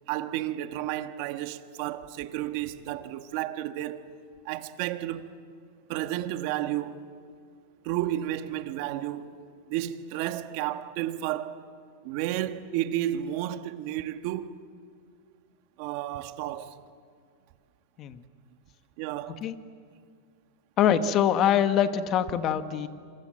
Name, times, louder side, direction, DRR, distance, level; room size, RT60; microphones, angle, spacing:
voice 1, 0.1-4.0 4.4-5.3 5.9-7.0 7.8-9.3 9.7-11.6 12.0-14.6 15.8-16.8 19.0-19.5, right 13 dB, 50° right, 1.4 m, -32 dB
voice 2, 20.8-22.9, left 9 dB, 30° left, 1.2 m, -24 dB
27.5 x 25.0 x 7.7 m
supercardioid pair, 155°, 0 cm